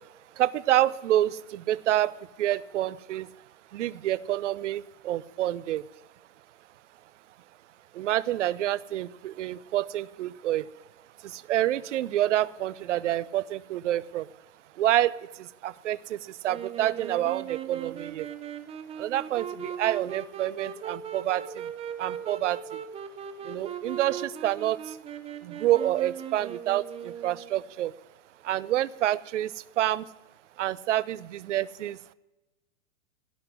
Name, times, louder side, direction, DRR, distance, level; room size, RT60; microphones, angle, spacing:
voice 1, 0.4-3.3 3.7-5.8 7.9-10.7 11.2-14.3 14.8-18.3 19.0-21.7 22.0-22.8 23.4-25.0 25.4-27.9 28.4-30.1 30.6-32.0, right 13 dB, 65° right, 19 dB, 0.8 m, -28 dB
Wind instrument woodwind instrument, 16.5-27.6, right 8 dB, 15° right, 0.8 m, -39 dB
16.5 x 6.0 x 9.5 m, 1.0 s
hypercardioid pair, 135°, 39 cm